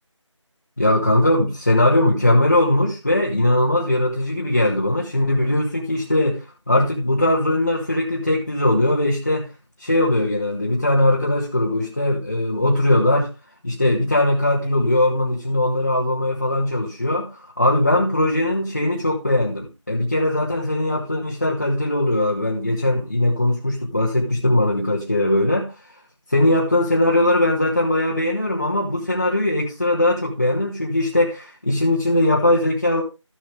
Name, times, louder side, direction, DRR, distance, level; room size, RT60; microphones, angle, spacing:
voice 1, 0.8-9.5 9.8-13.3 13.6-25.7 26.3-33.0, left 1 dB, 30° left, 1.6 m, -20 dB
14.0 x 7.2 x 3.4 m
figure-of-eight pair, 175°, 16 cm